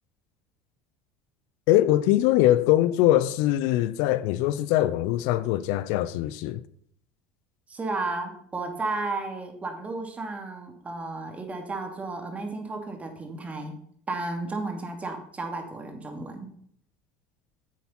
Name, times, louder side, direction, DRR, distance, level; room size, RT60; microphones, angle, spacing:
voice 1, 1.7-6.6, left 14 dB, 70° left, 0.6 m, -22 dB
voice 2, 7.7-13.8 14.1-16.5, right 3 dB, 25° right, 2.7 m, -33 dB
10.5 x 7.4 x 5.5 m
supercardioid pair, 95°, 6 cm